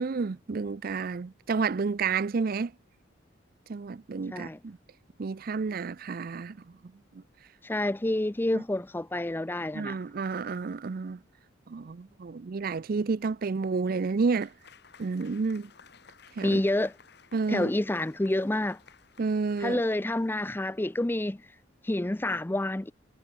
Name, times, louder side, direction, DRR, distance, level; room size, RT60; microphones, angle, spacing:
voice 1, 0.0-2.7 3.7-4.8 5.2-6.6 7.1-7.2 8.5-8.6 9.7-11.2 11.7-14.5 15.0-15.7 16.4-16.6 17.3-17.7 19.2-19.8, right 4 dB, 50° right, 0.4 m, -30 dB
voice 2, 7.6-10.0 16.4-16.9 17.5-18.8 19.6-21.5 21.8-22.9, left 1 dB, 10° left, 0.5 m, -28 dB
Applause / Crowd, 14.3-21.1, left 6 dB, 60° left, 2.2 m, -57 dB
head